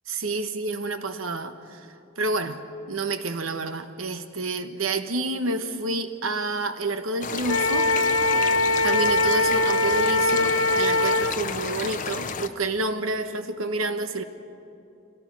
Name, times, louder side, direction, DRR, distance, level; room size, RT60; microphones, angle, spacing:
voice 1, 0.1-1.8 2.2-2.6 2.9-7.9 8.8-14.2, right 2 dB, 85° right, 9 dB, 1.2 m, -29 dB
sound 1, 7.2-12.5, left 5 dB, 40° left, 0.8 m, -32 dB
Wind instrument woodwind instrument, 7.4-11.3, left 2 dB, 85° left, 0.9 m, -22 dB
25.5 x 17.5 x 6.2 m, 2.8 s
head